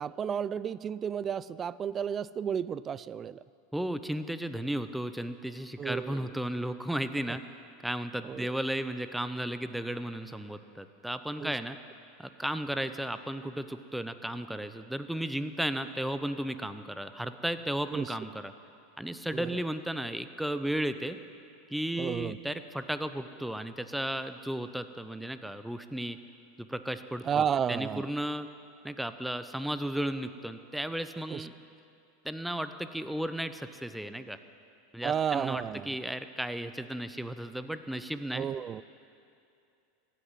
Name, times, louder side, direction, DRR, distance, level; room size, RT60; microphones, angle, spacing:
voice 1, 0.0-3.4 5.8-6.3 7.3-7.4 8.2-8.5 11.4-11.5 17.9-18.1 19.3-19.5 22.0-22.4 27.2-28.1 31.3-31.5 35.0-36.0 38.3-38.8, right 8 dB, 30° right, 19 dB, 0.4 m, -32 dB
voice 2, 3.7-7.4 7.8-11.8 12.2-18.5 19.0-21.2 21.7-26.2 26.6-28.5 28.8-31.5 32.2-34.4 34.9-38.5, right 1 dB, 5° right, 10 dB, 0.8 m, -34 dB
16.0 x 10.0 x 7.5 m, 2.6 s
hypercardioid pair, 105°, 0 cm